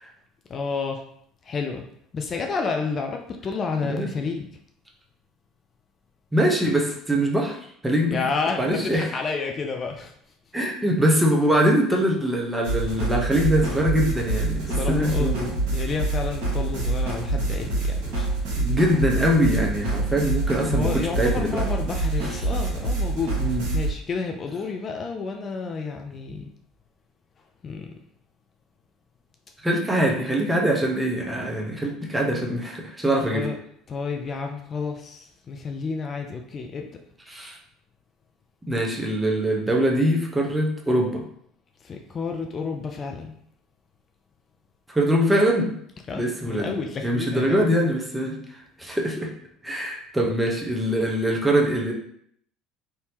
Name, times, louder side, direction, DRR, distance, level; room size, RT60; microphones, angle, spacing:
voice 1, 0.5-1.0 1.4-1.8 2.1-4.5 8.1-10.1 14.7-15.3 15.7-18.3 20.7-23.4 23.7-26.5 27.6-27.9 33.2-33.6 33.9-36.9 41.8-43.4 46.1-47.7, left 4 dB, 40° left, 3 dB, 0.4 m, -30 dB
voice 2, 6.3-7.6 7.8-8.2 8.6-9.1 10.5-15.5 18.5-21.6 23.4-23.6 29.6-33.5 37.3-37.5 38.7-41.2 44.9-45.7 46.2-46.7 47.0-48.3 48.8-49.3 49.6-51.9, equal, 10° right, -1 dB, 0.9 m, -23 dB
sound 1, 12.6-23.9, right 2 dB, 65° right, 1.1 m, -26 dB
3.4 x 2.7 x 2.9 m, 0.68 s
hypercardioid pair, 65°, 0 cm